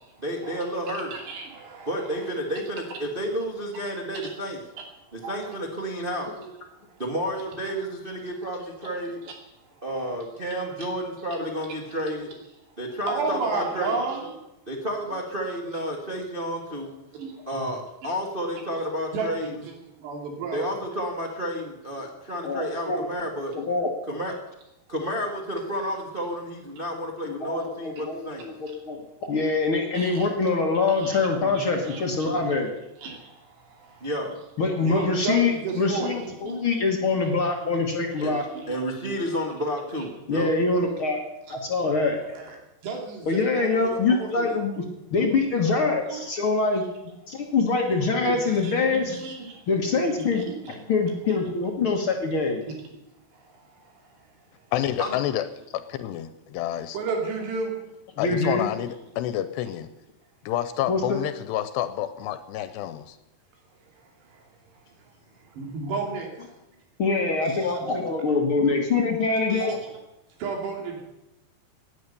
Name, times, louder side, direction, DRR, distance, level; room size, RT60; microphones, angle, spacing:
voice 1, 0.2-1.1 1.9-4.6 5.1-6.3 7.0-9.2 9.8-12.3 12.8-14.0 14.7-16.9 17.5-19.5 20.5-23.5 24.0-24.3 24.9-28.5 34.0-34.3 38.2-38.3 38.7-40.5 48.2-48.3 48.9-49.1 55.0-55.2, equal, 55° right, -1 dB, 0.6 m, -31 dB
voice 2, 1.1-2.3 5.2-5.5 9.7-10.2 13.1-14.4 17.1-17.7 19.1-19.7 20.0-20.7 29.9-30.3 30.9-31.3 31.5-32.5 33.0-34.1 34.8-36.7 36.9-37.8 38.2-38.7 39.0-39.2 41.5-41.6 42.2-42.6 42.8-44.6 45.0-45.1 46.1-46.2 48.2-49.6 50.1-50.9 51.4-51.5 53.3-54.2 56.9-57.8 64.2-64.5 65.0-65.1 65.4-66.3 67.5-67.9 69.2-69.8 70.4-71.0, right 4 dB, 80° right, 1 dB, 5.0 m, -33 dB
voice 3, 22.4-23.1 23.5-23.9 27.3-29.0 29.3-32.7 34.6-38.4 40.3-41.2 41.5-42.2 43.3-44.8 45.1-46.8 47.3-49.1 49.7-50.4 50.9-52.6 58.2-58.7 60.9-61.2 67.0-69.8, left 3 dB, 55° left, 2 dB, 1.4 m, -24 dB
voice 4, 54.7-55.5 55.7-57.0 58.2-59.9 60.5-63.2, left 12 dB, 85° left, 12 dB, 2.8 m, -29 dB
18.5 x 10.0 x 6.8 m, 0.93 s
omnidirectional pair, 4.8 m